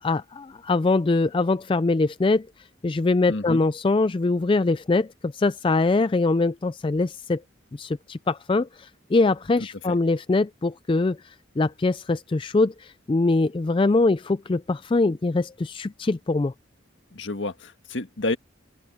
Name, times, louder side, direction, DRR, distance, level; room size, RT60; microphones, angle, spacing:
voice 1, 0.0-2.5 2.8-7.4 7.7-16.5, left 3 dB, 25° left, 0.3 m, -23 dB
voice 2, 3.3-3.6 17.1-18.4, left 2 dB, 65° left, 1.7 m, -29 dB
open air
head